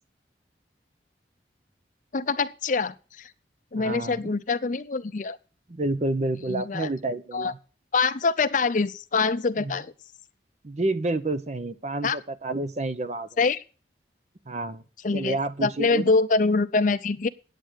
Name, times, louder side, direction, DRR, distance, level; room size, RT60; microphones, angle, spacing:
voice 1, 2.1-3.3 3.7-5.4 6.5-6.9 7.3-7.5 7.9-9.9 12.0-12.2 13.4-13.6 15.0-17.3, left 4 dB, 45° left, 14 dB, 0.5 m, -25 dB
voice 2, 3.7-4.3 5.7-7.6 9.6-9.8 10.6-13.3 14.4-14.8 15.1-16.1, right 2 dB, 40° right, 11 dB, 0.8 m, -29 dB
9.2 x 9.1 x 6.3 m, 0.37 s
head